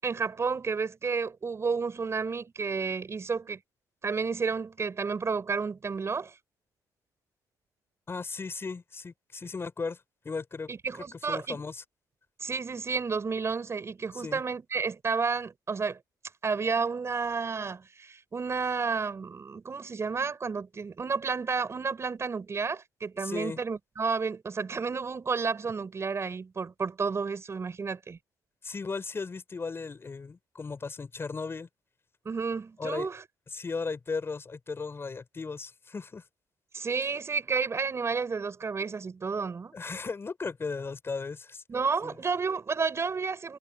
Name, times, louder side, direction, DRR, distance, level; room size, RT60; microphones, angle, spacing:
voice 1, 0.0-3.6 4.0-6.3 10.7-11.6 12.4-16.0 16.4-28.2 32.2-33.2 36.7-39.7 41.7-43.6, right 5 dB, 35° right, 5.9 m, -31 dB
voice 2, 8.1-10.0 10.2-11.8 14.1-14.4 23.2-23.6 28.6-31.7 32.8-33.1 33.5-36.2 39.7-41.6 42.0-42.2, left 4 dB, 30° left, 5.8 m, -36 dB
cardioid pair, 90°, 8 cm